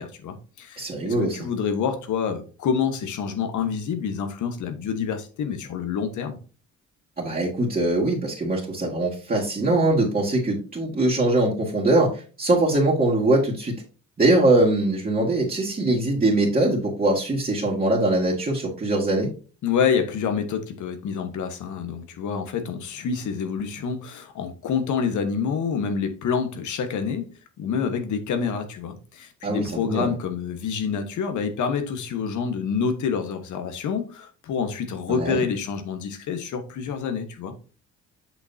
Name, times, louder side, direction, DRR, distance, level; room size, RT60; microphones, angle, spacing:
voice 1, 0.0-6.4 19.6-27.3 27.6-37.5, left 6 dB, 75° left, 1.5 m, -27 dB
voice 2, 0.8-1.4 7.2-13.8 14.2-19.3 29.4-30.1 35.1-35.4, right 2 dB, 30° right, 2.3 m, -22 dB
7.8 x 6.1 x 2.8 m
cardioid pair, 90°, 30 cm